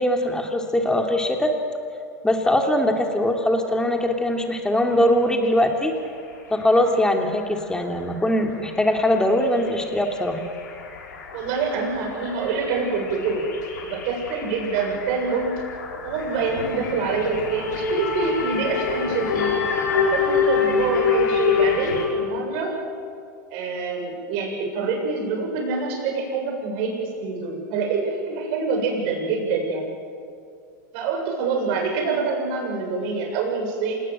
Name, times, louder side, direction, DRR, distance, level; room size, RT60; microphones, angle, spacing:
voice 1, 0.0-1.5 2.2-5.9 6.5-10.4, left 1 dB, 5° left, 3 dB, 3.1 m, -21 dB
sound 1, 7.0-7.1 7.5-7.7 8.0-8.2 8.5-22.1, left 5 dB, 80° left, 5.7 m, -26 dB
voice 2, 11.3-13.4 13.8-15.5 16.0-19.5 19.9-22.7 23.5-29.9 30.9-33.9, right 4 dB, 55° right, 1 dB, 7.4 m, -26 dB
28.0 x 19.0 x 7.8 m, 2.3 s
hypercardioid pair, 105°, 10 cm